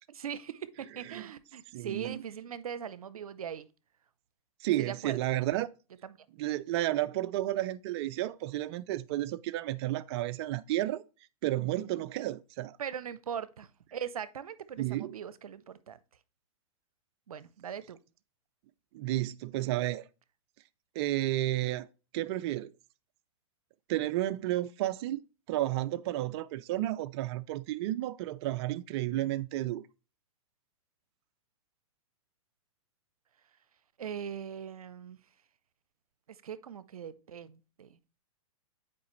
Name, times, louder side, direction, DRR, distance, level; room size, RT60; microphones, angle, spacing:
voice 1, 0.1-3.7 4.8-5.2 6.0-6.1 12.8-16.0 17.3-18.0 34.0-35.2 36.3-38.0, right 8 dB, 90° right, 0.6 m, -40 dB
voice 2, 1.7-2.2 4.6-5.7 6.4-11.0 11.4-12.8 14.8-15.2 18.9-20.0 21.0-21.9 22.1-22.7 23.9-25.2 25.5-29.8, right 15 dB, 45° right, 0.4 m, -32 dB
8.5 x 4.8 x 3.1 m
hypercardioid pair, 125°, 18 cm